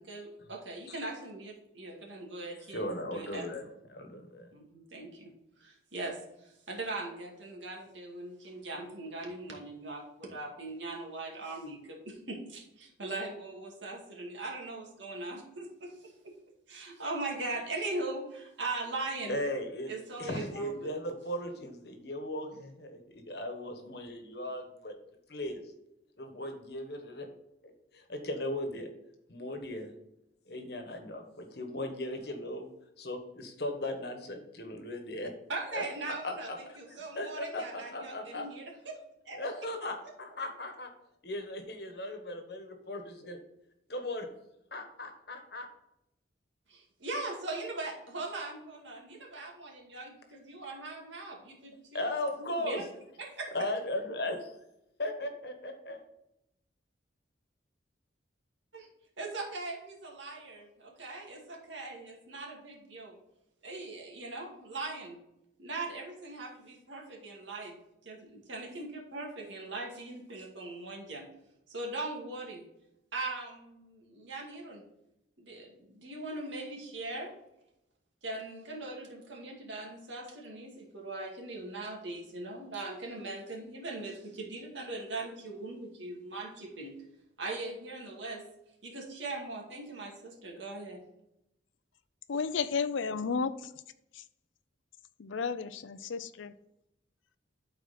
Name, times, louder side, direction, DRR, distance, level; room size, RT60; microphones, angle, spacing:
voice 1, 0.0-3.5 4.5-5.3 5.6-16.4 16.7-19.4 19.9-20.9 35.5-39.0 39.2-39.7 46.7-52.1 52.6-52.8 53.2-53.5 58.7-58.9 59.2-63.2 63.6-65.2 65.6-67.8 68.0-71.3 71.7-72.6 73.1-74.8 75.4-77.3 78.2-87.0 87.4-88.5 88.8-91.0, right 2 dB, 80° right, -1 dB, 2.2 m, -40 dB
voice 2, 2.7-4.5 19.3-19.9 20.2-24.9 25.3-25.6 26.2-27.3 27.6-28.9 29.3-29.9 30.5-32.7 33.0-35.3 35.7-35.8 36.2-36.6 37.1-38.5 39.3-40.9 41.2-43.4 43.9-44.3 44.7-45.7 51.9-52.8 53.5-54.5 55.0-56.0, left 1 dB, 55° left, 5 dB, 1.3 m, -37 dB
voice 3, 92.3-93.5 95.2-96.5, left 5 dB, 90° left, 14 dB, 0.5 m, -32 dB
12.0 x 4.4 x 4.3 m, 0.84 s
head